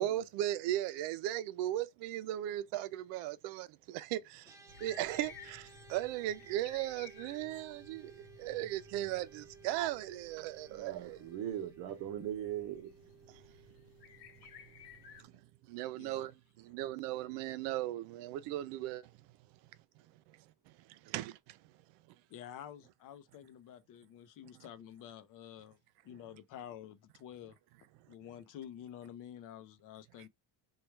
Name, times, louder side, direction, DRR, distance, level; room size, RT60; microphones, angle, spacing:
voice 1, 0.0-4.6 4.8-11.2 13.3-13.4 15.7-19.1 20.3-20.4 20.9-21.6, right 13 dB, 85° right, 0.5 m, -37 dB
sound 1, 4.4-15.9, right 6 dB, 10° right, 0.4 m, -59 dB
sound 2, 4.7-15.2, left 6 dB, 75° left, 1.0 m, -57 dB
voice 2, 10.7-12.9 15.2-15.4, right 11 dB, 65° right, 0.9 m, -40 dB
voice 3, 15.9-16.3 22.3-25.8 26.0-27.6 28.1-30.3, left 10 dB, 50° left, 0.6 m, -49 dB
3.2 x 2.3 x 4.3 m
cardioid pair, 160°, 41 cm